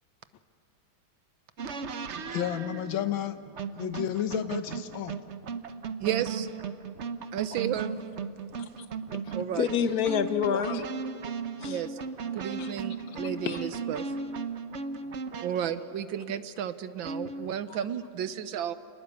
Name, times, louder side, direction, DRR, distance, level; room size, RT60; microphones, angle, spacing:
sound 1, 1.6-15.8 17.0-17.7, right 5 dB, 50° right, 0.9 m, -36 dB
voice 1, 2.3-3.4 3.8-5.2, left 10 dB, 80° left, 10 dB, 1.8 m, -31 dB
voice 2, 6.0-6.5 7.3-8.0 9.3-9.7 11.7-12.0 12.3-14.0 15.4-18.7, right 10 dB, 75° right, 12 dB, 1.6 m, -33 dB
voice 3, 9.1-10.9 11.6-11.8 12.6-12.7 13.4-13.7 17.7-17.8, left 7 dB, 55° left, 10 dB, 1.4 m, -29 dB
29.0 x 19.5 x 8.4 m, 2.4 s
omnidirectional pair, 2.2 m